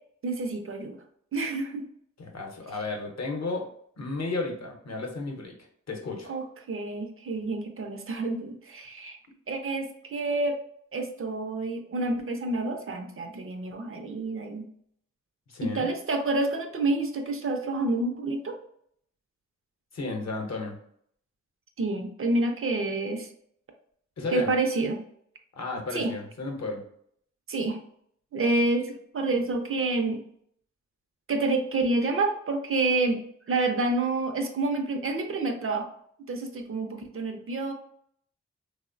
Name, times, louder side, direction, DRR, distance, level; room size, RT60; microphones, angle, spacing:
voice 1, 0.2-1.0 1.3-1.9 6.3-9.2 9.5-10.6 10.9-14.7 15.6-18.6 21.8-23.3 24.3-25.0 25.9-26.1 27.5-27.8 28.3-30.2 31.3-33.2 33.5-35.9 36.3-37.7, right 2 dB, 45° right, 5 dB, 0.4 m, -28 dB
voice 2, 2.2-3.7 4.0-5.5 5.9-6.3 15.5-15.9 19.9-20.8 24.2-24.5 25.5-26.8, left 3 dB, 60° left, 1 dB, 0.7 m, -33 dB
2.9 x 2.0 x 2.4 m, 0.66 s
wide cardioid pair, 70°, 30 cm